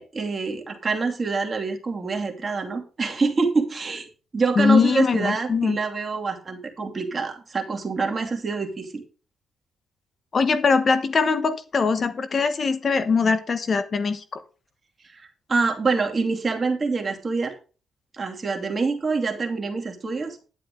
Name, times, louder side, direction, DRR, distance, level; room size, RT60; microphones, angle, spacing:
voice 1, 0.0-4.1 4.3-9.0 15.1-17.6 18.1-20.4, right 4 dB, 35° right, 2 dB, 2.5 m, -26 dB
voice 2, 4.6-5.8 10.3-14.4, left 5 dB, 45° left, 12 dB, 1.0 m, -21 dB
10.5 x 8.8 x 3.8 m, 0.36 s
cardioid pair, 85°, 0 cm